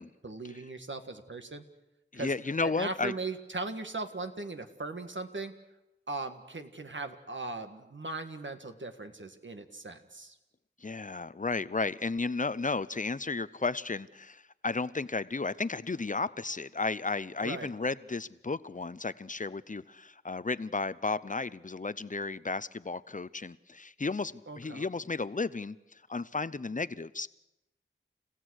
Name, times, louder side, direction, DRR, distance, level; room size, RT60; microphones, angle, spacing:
voice 1, 0.2-1.6 2.1-2.3 2.8-5.5 6.1-10.4 17.4-17.7 24.5-24.9, right 3 dB, 70° right, 7 dB, 1.7 m, -38 dB
voice 2, 2.1-3.1 10.8-27.3, left 3 dB, 40° left, 16 dB, 0.7 m, -33 dB
30.0 x 16.0 x 6.4 m, 0.97 s
wide cardioid pair, 45°, 20 cm